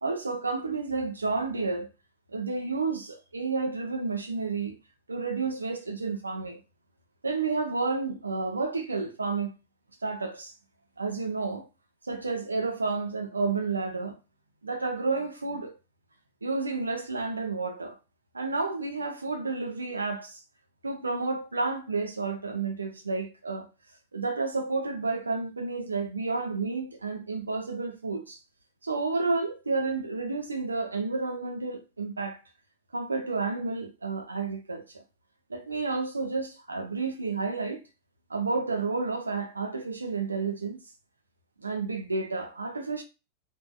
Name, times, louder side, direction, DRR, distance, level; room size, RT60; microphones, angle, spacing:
voice 1, 0.0-1.9 2.3-4.8 5.1-6.6 7.2-9.5 10.0-10.5 11.0-11.7 12.1-14.2 14.6-15.8 16.4-18.0 18.3-20.4 20.8-23.7 24.1-28.4 28.8-32.4 32.9-35.0 35.5-37.8 38.3-40.8 41.6-43.0, right 3 dB, 80° right, 0.5 m, -31 dB
3.5 x 2.5 x 2.2 m
figure-of-eight pair, 90°, 0 cm